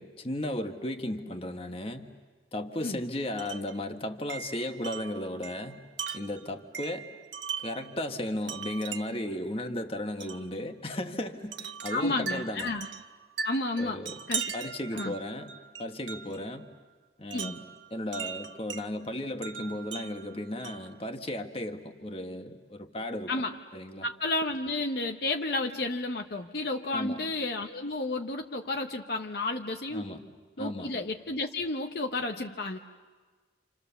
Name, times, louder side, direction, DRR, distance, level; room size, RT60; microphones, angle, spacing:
voice 1, 0.0-2.1 2.5-5.8 6.1-7.1 7.6-12.7 13.8-14.2 14.5-15.5 15.8-16.7 17.2-17.6 17.9-23.3 23.7-24.0 26.9-27.2 29.9-30.2 30.6-30.9, left 1 dB, 30° left, 5 dB, 1.4 m, -35 dB
Wind chime, 3.4-3.8 4.3-7.9 8.5-9.3 10.2-10.5 11.5-16.4 17.3-18.9 19.4-20.9, right 6 dB, 85° right, 1.2 m, -39 dB
voice 2, 11.9-12.9 13.4-14.0 14.3-14.5 14.9-15.1 17.3-17.5 23.3-23.5 24.0-30.0 30.6-32.8, left 2 dB, 55° left, 4 dB, 0.9 m, -31 dB
29.0 x 28.0 x 7.0 m, 1.4 s
head